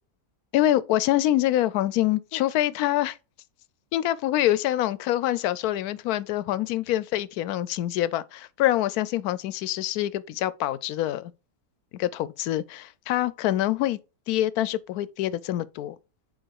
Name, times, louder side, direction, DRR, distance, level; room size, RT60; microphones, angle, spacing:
voice 1, 0.5-3.2 3.9-11.3 11.9-14.0 14.3-16.0, left 13 dB, 75° left, 1.0 m, -25 dB
6.4 x 4.4 x 4.7 m
omnidirectional pair, 1.7 m